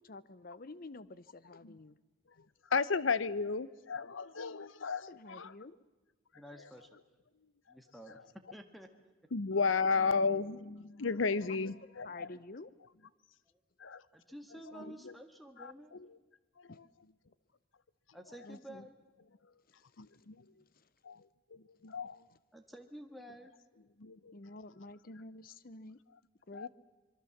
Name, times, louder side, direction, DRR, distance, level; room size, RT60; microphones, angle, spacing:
voice 1, 0.0-2.0 5.1-5.8 11.8-12.7 14.7-15.1 16.7-16.8 18.4-18.9 20.8-20.9 24.3-26.0 26.5-26.7, left 2 dB, 50° left, 16 dB, 0.8 m, -49 dB
voice 2, 2.7-5.5 9.3-12.3 13.8-14.0 15.0-15.1 15.6-15.7 16.0-16.1 16.8-16.9 20.0-20.4 21.0-21.2 21.5-22.2 24.0-24.4 26.5-26.7, left 4 dB, 90° left, 18 dB, 0.8 m, -33 dB
voice 3, 6.3-6.9 7.7-8.3 8.5-8.9 13.5-13.6 14.1-16.0 18.1-19.0 20.5-20.7 22.5-23.5, right 1 dB, ahead, 6 dB, 1.6 m, -51 dB
25.5 x 23.0 x 7.3 m, 1.2 s
head